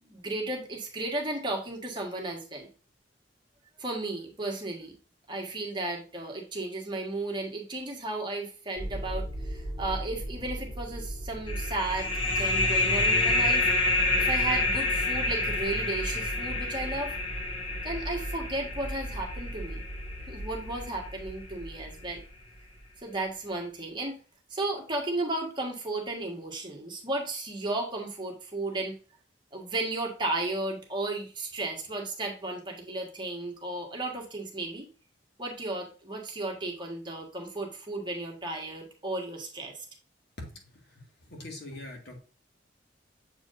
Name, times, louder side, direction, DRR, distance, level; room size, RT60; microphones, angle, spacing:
voice 1, 0.0-2.7 3.8-4.9 5.3-13.7 14.2-17.1 17.8-19.8 20.3-22.2 23.0-24.2 24.5-29.0 29.5-34.9 35.4-39.8, right 2 dB, 25° right, 0 dB, 1.5 m, -34 dB
sound 1, 8.8-23.0, right 1 dB, 45° left, 2.0 m, -38 dB
sound 2, 11.5-20.8, left 2 dB, 30° left, 1.7 m, -28 dB
voice 2, 41.3-42.2, left 1 dB, 65° left, 1 dB, 2.1 m, -41 dB
7.5 x 4.8 x 2.6 m, 0.38 s
head